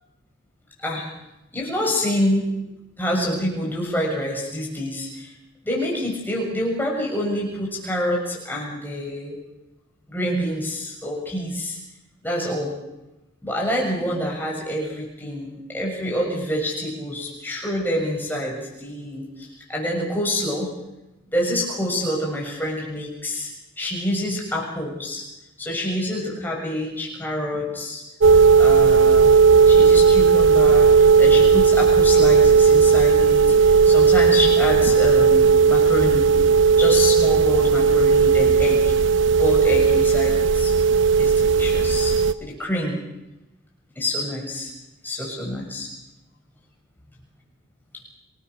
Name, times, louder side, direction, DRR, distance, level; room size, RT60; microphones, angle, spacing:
voice 1, 1.5-2.5 3.0-5.3 5.6-9.4 10.1-11.8 12.2-12.7 13.4-20.7 21.3-23.5 23.8-25.2 25.6-28.0 28.6-29.4 29.7-36.3 36.7-38.9 39.3-40.7 41.2-43.0 44.0-44.7 45.0-45.9, equal, 10° left, -2 dB, 7.3 m, -27 dB
sound 1, 28.2-42.3, right 5 dB, 70° right, 0.9 m, -15 dB
26.5 x 21.0 x 6.4 m, 0.95 s
head